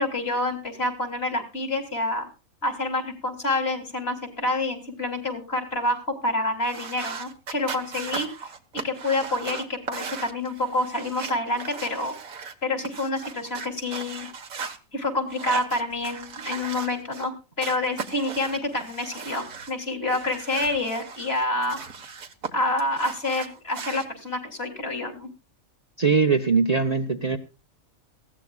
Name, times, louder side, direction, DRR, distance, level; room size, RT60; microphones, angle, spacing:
voice 1, 0.0-2.3 2.6-6.0 6.2-8.3 8.8-12.1 12.6-14.3 14.9-17.3 17.6-21.8 22.5-25.3, left 2 dB, 45° left, 4 dB, 3.5 m, -27 dB
sound 1, 6.6-12.5 12.8-14.8 15.3-17.3 17.6-19.7 20.1-22.5 22.8-24.1, right 5 dB, 80° right, 1.9 m, -37 dB
voice 2, 26.0-27.4, right 5 dB, 30° right, 5 dB, 1.0 m, -21 dB
20.0 x 16.0 x 2.4 m, 0.31 s
omnidirectional pair, 1.4 m